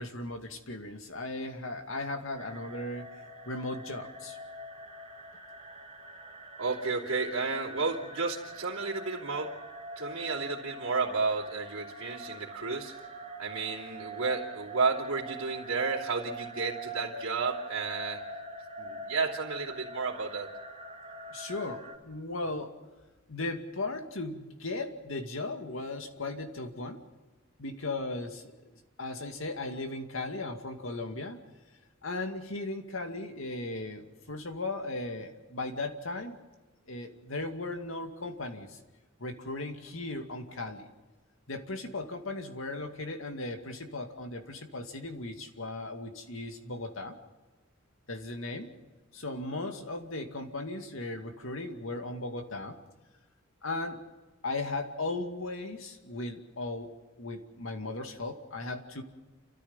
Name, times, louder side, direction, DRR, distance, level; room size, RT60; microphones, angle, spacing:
voice 1, 0.0-4.4 21.3-22.7 23.3-27.0 27.6-28.5 29.0-31.4 32.0-36.4 36.9-38.8 39.2-40.9 41.5-47.2 48.1-48.7 49.1-52.8 53.6-54.1 54.4-59.0, left 2 dB, 70° left, 5 dB, 2.4 m, -37 dB
sound 1, 2.4-22.0, right 2 dB, 35° right, 2.7 m, -44 dB
voice 2, 6.6-9.5 10.0-13.0 13.4-18.2 18.8-20.5, right 4 dB, 80° right, -6 dB, 3.0 m, -32 dB
29.5 x 14.0 x 7.3 m, 1.2 s
head